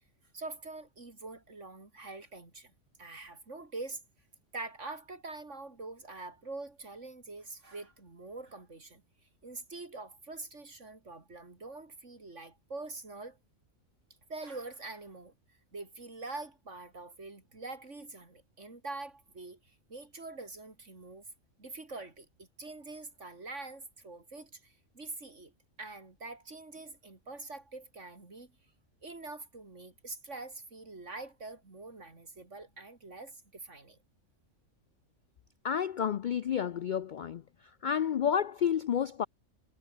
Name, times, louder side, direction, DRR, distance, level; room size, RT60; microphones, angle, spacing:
voice 1, 0.3-2.7 3.0-4.0 4.5-9.0 9.4-13.4 14.3-21.3 21.6-25.5 25.8-28.5 29.0-34.0, right 3 dB, 60° right, 4.1 m, -45 dB
voice 2, 35.6-37.4 37.8-39.3, left 8 dB, 90° left, 0.4 m, -30 dB
omnidirectional pair, 1.4 m